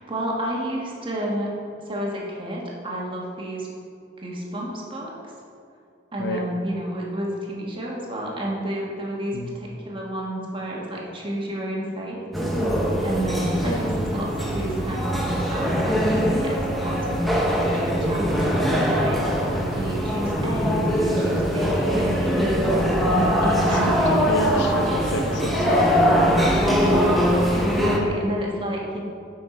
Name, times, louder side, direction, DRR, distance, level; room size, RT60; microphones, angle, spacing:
voice 1, 0.0-1.5 1.8-3.7 4.2-5.1 6.1-12.2 12.6-12.7 13.0-19.2 19.7-22.6 23.1-24.3 26.6-29.0, right 1 dB, 30° right, -3 dB, 1.5 m, -30 dB
sound 1, 12.3-28.0, equal, ahead, 0.9 m, -22 dB
voice 2, 23.5-26.6 27.9-28.1, left 1 dB, 90° left, 4 dB, 0.8 m, -29 dB
8.8 x 5.6 x 4.3 m, 2.4 s
head